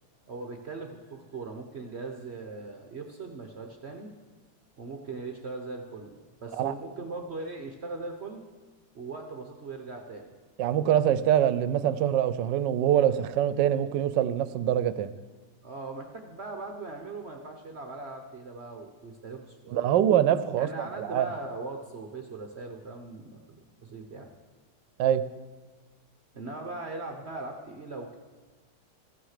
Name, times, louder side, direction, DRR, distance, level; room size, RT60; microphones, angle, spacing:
voice 1, 0.3-4.1 4.8-8.4 8.9-10.3 15.6-19.9 20.6-24.3 26.3-28.2, right 3 dB, 45° right, 3 dB, 1.0 m, -39 dB
voice 2, 10.6-15.1 19.7-21.3 25.0-25.2, right 10 dB, 85° right, 14 dB, 1.3 m, -24 dB
15.0 x 9.3 x 6.5 m, 1.3 s
omnidirectional pair, 1.9 m